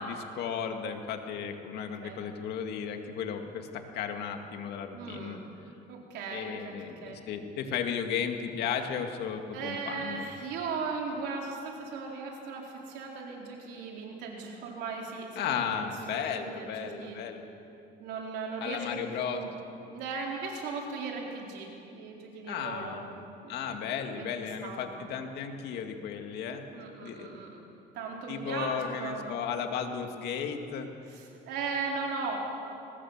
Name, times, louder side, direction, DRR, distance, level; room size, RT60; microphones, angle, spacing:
voice 1, 0.0-5.4 6.3-10.3 15.4-17.5 18.6-19.4 22.5-23.2 23.5-26.6 27.0-27.4 28.3-30.9, left 7 dB, 75° left, 5 dB, 2.2 m, -35 dB
voice 2, 1.8-2.2 4.9-5.4 5.9-6.7 7.0-7.2 9.5-17.2 18.0-18.8 19.1-19.5 19.9-23.5 23.8-24.2 24.6-24.9 26.7-27.6 27.9-29.3 31.1-32.4, right 4 dB, 85° right, -1 dB, 4.3 m, -38 dB
21.0 x 19.5 x 7.5 m, 2.7 s
cardioid pair, 110°, 17 cm